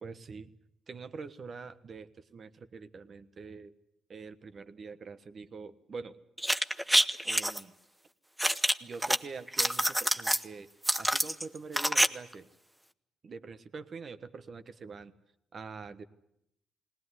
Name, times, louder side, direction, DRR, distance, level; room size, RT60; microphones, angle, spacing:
voice 1, 0.0-0.5 0.9-3.7 4.1-6.2 7.2-7.7 8.8-10.7 10.9-12.5 13.2-15.1 15.5-16.0, right 4 dB, 45° right, 12 dB, 1.3 m, -44 dB
sound 1, 6.4-7.6 8.4-9.2 9.5-10.4 10.8-12.1 12.3-12.4, equal, 5° right, 0.9 m, -26 dB
19.5 x 19.0 x 9.7 m, 0.79 s
cardioid pair, 75°, 0 cm